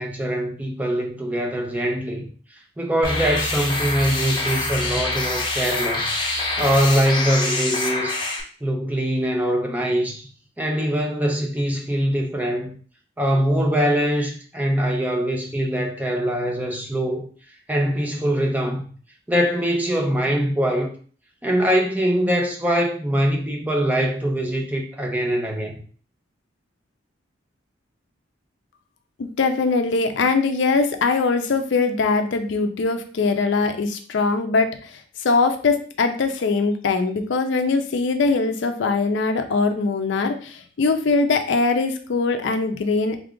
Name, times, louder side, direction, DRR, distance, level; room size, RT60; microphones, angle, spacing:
voice 1, 0.0-2.3 2.8-6.1 6.6-8.2 8.6-10.3 10.6-12.7 13.2-17.3 17.7-18.9 19.3-20.9 21.4-25.7, equal, 10° right, 0.5 m, -23 dB
sound 1, 3.0-8.4, left 2 dB, 25° left, 0.7 m, -25 dB
voice 2, 29.2-43.2, left 4 dB, 65° left, 0.4 m, -22 dB
3.3 x 2.3 x 3.7 m
head